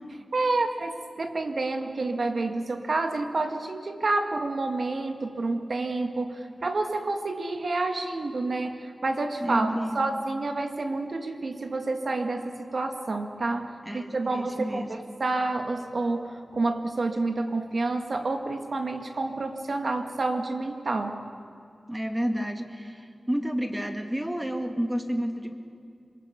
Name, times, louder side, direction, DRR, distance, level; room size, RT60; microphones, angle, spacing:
voice 1, 0.3-21.4, right 2 dB, 60° right, 5 dB, 2.0 m, -29 dB
voice 2, 9.4-10.1 13.8-15.0 21.9-25.5, equal, 10° right, 5 dB, 2.0 m, -30 dB
26.0 x 23.0 x 7.0 m, 2.4 s
wide cardioid pair, 85°, 0 cm